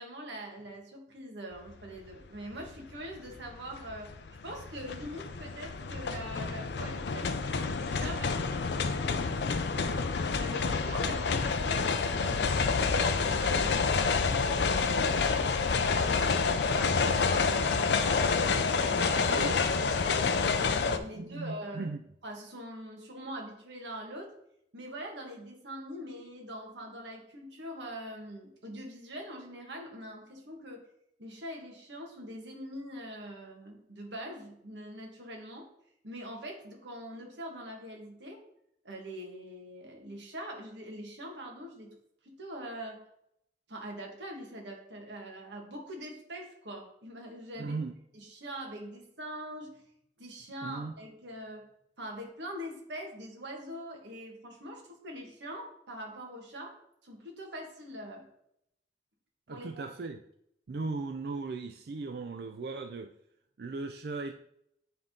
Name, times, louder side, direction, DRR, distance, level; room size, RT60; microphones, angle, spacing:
voice 1, 0.0-4.1 4.4-9.7 10.4-16.4 16.7-18.3 18.7-21.8 22.2-24.3 24.7-30.9 31.2-35.7 36.0-38.4 38.8-41.9 42.2-43.0 43.7-47.7 48.1-49.8 50.2-51.7 52.0-56.7 57.0-58.3 59.5-59.8, equal, 85° right, 0 dB, 1.7 m, -43 dB
sound 1, 2.0-2.1 2.5-21.0, left 4 dB, 75° left, 0.5 m, -28 dB
voice 2, 19.3-19.6 21.1-22.0 47.6-47.9 50.6-50.9 59.5-60.2 60.7-63.1 63.6-64.3, right 3 dB, 60° right, 6 dB, 0.4 m, -37 dB
9.0 x 3.7 x 3.8 m, 0.73 s
head